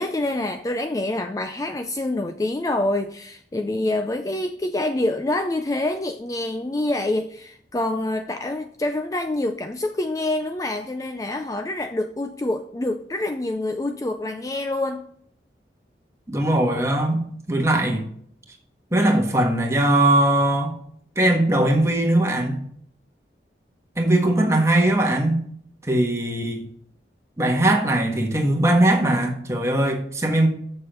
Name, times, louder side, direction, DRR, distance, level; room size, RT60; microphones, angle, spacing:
voice 1, 0.0-15.1, left 2 dB, 20° left, 0.4 m, -26 dB
voice 2, 16.3-17.2 17.5-18.0 18.9-20.8 21.1-22.6 24.0-25.4 25.8-26.7 27.4-30.5, right 1 dB, 15° right, 1.5 m, -20 dB
6.9 x 6.8 x 5.1 m
head